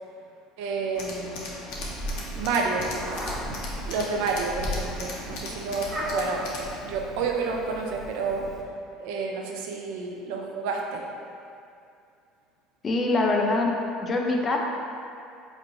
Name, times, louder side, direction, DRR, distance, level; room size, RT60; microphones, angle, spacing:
voice 1, 0.6-1.4 2.4-2.9 3.8-6.5 6.8-8.5 9.0-11.0, right 4 dB, 80° right, 1 dB, 0.4 m, -29 dB
Tools, 0.9-6.8, left 2 dB, 75° left, 0.7 m, -38 dB
Meow, 1.7-8.6, equal, 15° right, 0.8 m, -36 dB
voice 2, 12.8-13.7 14.0-14.6, left 2 dB, 35° left, 1 dB, 0.5 m, -23 dB
4.3 x 3.0 x 2.6 m, 2.5 s
supercardioid pair, 95°, 0 cm